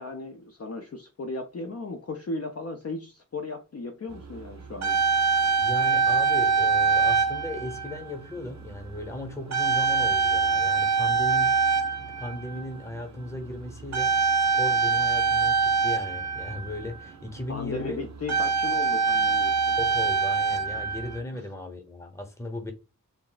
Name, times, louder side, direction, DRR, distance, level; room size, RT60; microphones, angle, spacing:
voice 1, 0.0-5.0 17.5-19.8 21.3-21.4, left 3 dB, 45° left, 0.4 m, -36 dB
sound 1, 4.3-4.4 4.6-8.1 8.8-9.0 9.5-12.8 13.9-17.0 17.7-17.8 18.1-21.2, right 5 dB, 50° right, 0.4 m, -24 dB
voice 2, 5.6-11.5 12.0-18.0 19.8-22.7, left 1 dB, 10° left, 0.8 m, -36 dB
2.3 x 2.1 x 3.8 m
wide cardioid pair, 40°, 35 cm